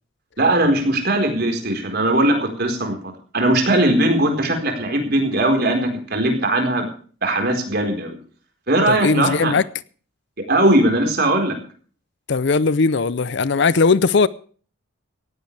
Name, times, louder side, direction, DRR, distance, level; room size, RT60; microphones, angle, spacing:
voice 1, 0.4-3.0 3.3-6.9 7.2-8.2 8.7-9.5 10.4-11.6, right 1 dB, 50° right, 4.5 m, -19 dB
voice 2, 8.9-9.6 12.3-14.3, left 4 dB, 55° left, 0.6 m, -18 dB
18.0 x 16.0 x 3.4 m
head